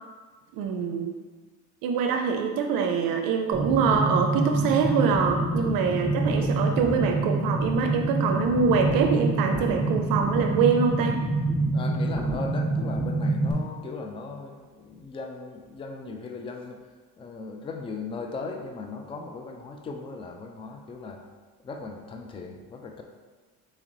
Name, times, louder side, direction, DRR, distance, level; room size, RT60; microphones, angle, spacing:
voice 1, 0.5-1.2 1.8-11.2, right 5 dB, 70° right, 4 dB, 0.5 m, -24 dB
sound 1, 3.5-13.5, right 2 dB, ahead, 0.8 m, -26 dB
voice 2, 11.7-16.8 17.2-21.2 21.6-23.0, left 4 dB, 15° left, 3 dB, 0.3 m, -37 dB
4.2 x 3.0 x 3.7 m, 1.4 s
cardioid pair, 110°, 35 cm